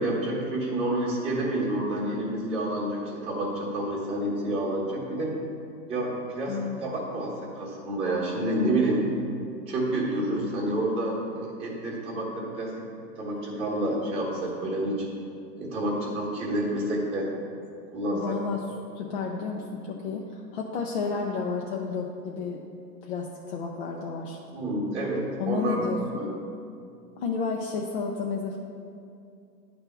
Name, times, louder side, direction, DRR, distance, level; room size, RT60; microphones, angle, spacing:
voice 1, 0.0-5.3 5.9-9.1 9.7-12.8 13.2-15.0 15.6-17.3 17.9-18.4 24.5-26.3, right 1 dB, 10° right, -5 dB, 1.0 m, -29 dB
voice 2, 6.5-6.8 18.1-18.6 18.9-22.6 23.0-24.4 25.4-26.4 27.2-28.6, left 5 dB, 40° left, -1 dB, 0.5 m, -31 dB
10.0 x 3.4 x 5.9 m, 2.5 s
hypercardioid pair, 165°, 49 cm